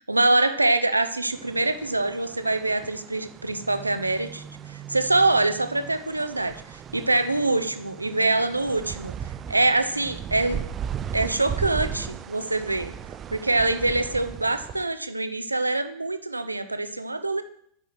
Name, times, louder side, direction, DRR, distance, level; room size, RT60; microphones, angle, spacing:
voice 1, 0.0-4.4 4.7-9.1 9.5-10.6 11.1-12.9 13.3-17.4, right 2 dB, 85° right, 10 dB, 0.6 m, -24 dB
sound 1, 1.3-14.8, right 8 dB, 25° right, 0.4 m, -37 dB
9.8 x 4.9 x 5.9 m, 0.69 s
figure-of-eight pair, 90°, 0 cm